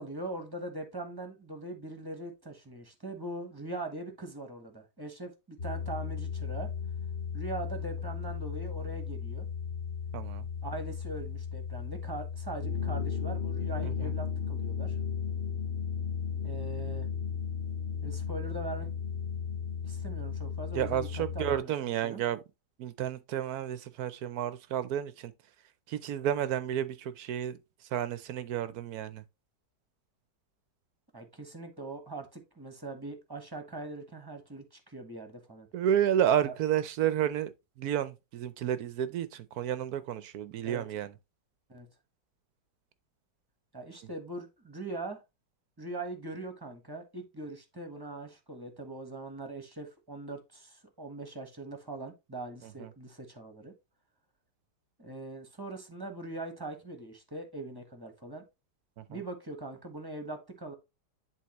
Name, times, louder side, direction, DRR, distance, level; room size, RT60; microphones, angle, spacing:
voice 1, 0.0-6.7 7.3-9.5 10.6-15.0 16.4-17.1 18.0-18.9 19.8-22.2 31.1-35.7 36.4-36.5 40.6-40.9 41.7-41.9 43.7-45.2 45.8-53.7 55.0-58.4 59.1-60.7, right 2 dB, 15° right, 1.1 m, -41 dB
sound 1, 5.6-21.6, left 7 dB, 35° left, 0.9 m, -35 dB
voice 2, 10.1-10.4 13.8-14.1 20.7-22.4 22.8-25.3 25.9-27.6 27.9-29.2 35.7-37.5 37.8-41.1 52.6-52.9 59.0-59.2, right 10 dB, 70° right, 1.0 m, -31 dB
10.5 x 3.6 x 3.0 m
omnidirectional pair, 1.9 m